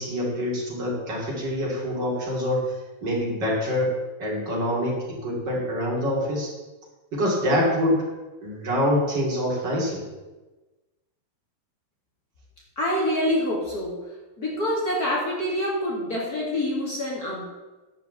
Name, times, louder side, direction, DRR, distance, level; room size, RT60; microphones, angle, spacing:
voice 1, 0.0-2.7 3.0-6.5 7.1-8.1 8.4-10.1, equal, 30° right, -3 dB, 3.0 m, -25 dB
voice 2, 12.8-14.0 14.4-17.4, left 1 dB, 30° left, -4 dB, 2.3 m, -26 dB
10.5 x 5.4 x 7.9 m, 1.2 s
omnidirectional pair, 4.2 m